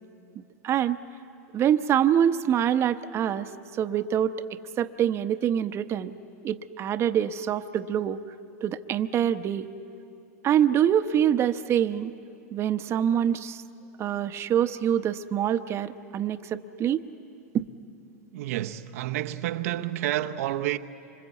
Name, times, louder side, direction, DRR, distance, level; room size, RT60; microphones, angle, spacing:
voice 1, 0.3-1.0 1.5-4.3 4.8-6.1 6.4-8.2 8.6-9.7 10.4-12.1 12.5-13.6 14.0-17.0 17.5-17.6, right 9 dB, 30° right, 0.9 m, -25 dB
voice 2, 18.3-20.8, right 13 dB, 65° right, 0.9 m, -29 dB
26.5 x 25.5 x 8.3 m
hypercardioid pair, 120°, 8 cm